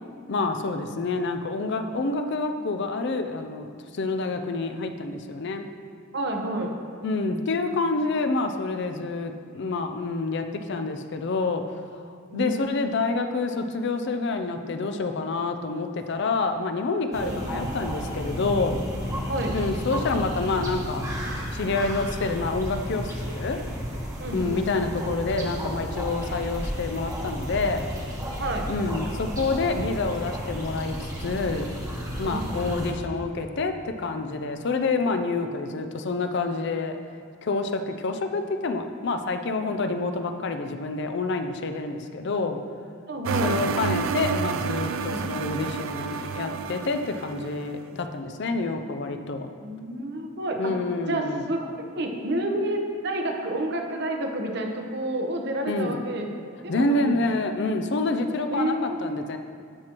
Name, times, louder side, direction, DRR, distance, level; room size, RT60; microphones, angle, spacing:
voice 1, 0.3-5.7 7.0-11.8 12.3-18.8 19.5-21.0 21.3-23.6 24.3-27.9 28.7-31.7 32.2-37.0 37.4-42.6 43.4-49.5 50.6-51.5 55.7-56.0 56.7-59.4, left 3 dB, 60° left, 7 dB, 0.5 m, -28 dB
voice 2, 6.1-6.7 12.3-12.6 17.2-17.4 19.3-19.6 24.2-24.6 28.4-28.7 32.2-32.4 43.1-43.6 45.1-45.3 49.6-50.7 51.1-51.6 51.9-56.3 56.6-57.2 58.5-59.4, right 1 dB, 55° right, 2 dB, 0.9 m, -29 dB
sound 1, 17.1-32.9, equal, 15° right, 1.1 m, -32 dB
sound 2, 43.3-47.7, right 5 dB, 75° right, 0.3 m, -29 dB
12.5 x 6.0 x 3.0 m, 2.2 s
head